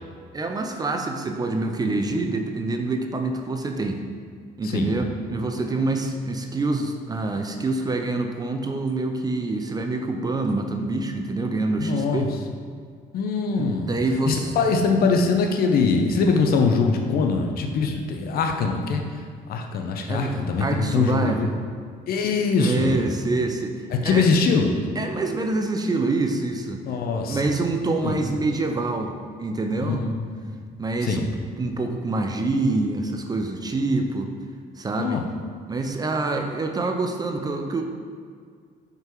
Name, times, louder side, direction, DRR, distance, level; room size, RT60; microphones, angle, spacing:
voice 1, 0.3-4.0 4.6-12.3 13.6-14.5 20.1-21.6 22.6-24.3 25.0-26.8 27.3-30.0 30.8-31.3 31.6-34.3 34.8-35.2 35.7-37.8, right 2 dB, 25° right, 4 dB, 0.5 m, -26 dB
voice 2, 4.6-4.9 11.8-12.3 13.1-13.9 14.3-19.0 19.5-21.5 22.1-23.0 23.9-24.8 26.8-27.5 28.0-28.2 29.8-30.4 31.0-31.3 35.0-35.2, left 4 dB, 65° left, 3 dB, 0.7 m, -22 dB
5.5 x 3.9 x 4.5 m, 2.1 s
cardioid pair, 110°, 17 cm